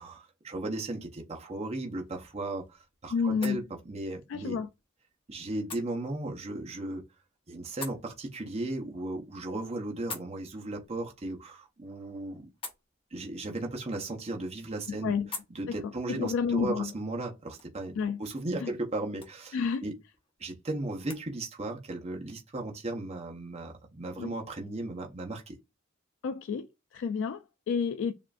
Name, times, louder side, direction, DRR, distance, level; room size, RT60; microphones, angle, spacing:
voice 1, 0.0-4.6 5.3-7.0 7.5-12.5 13.1-15.1 15.5-19.6 19.8-20.0 20.4-25.6, right 2 dB, 30° right, 0.7 m, -36 dB
sound 1, 1.8-21.2, left 4 dB, 25° left, 0.8 m, -50 dB
voice 2, 3.1-3.6 4.3-4.7 14.9-15.3 15.7-16.9 18.0-18.2 18.6-18.7 19.5-19.8 24.2-24.3 26.2-28.1, left 5 dB, 65° left, 0.3 m, -30 dB
7.0 x 2.5 x 2.3 m
head